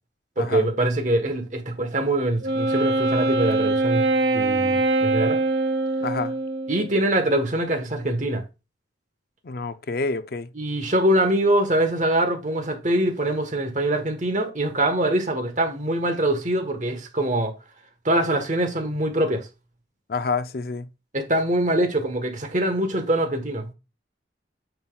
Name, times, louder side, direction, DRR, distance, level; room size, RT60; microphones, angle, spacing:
voice 1, 0.4-5.4 6.7-8.4 10.5-17.5 18.0-19.5 21.1-23.7, right 1 dB, 40° right, 1.3 m, -23 dB
Wind instrument woodwind instrument, 2.4-7.0, right 2 dB, 70° right, 0.9 m, -23 dB
voice 2, 6.0-6.4 9.4-10.5 20.1-20.9, left 4 dB, 55° left, 0.5 m, -28 dB
9.2 x 5.8 x 2.4 m
head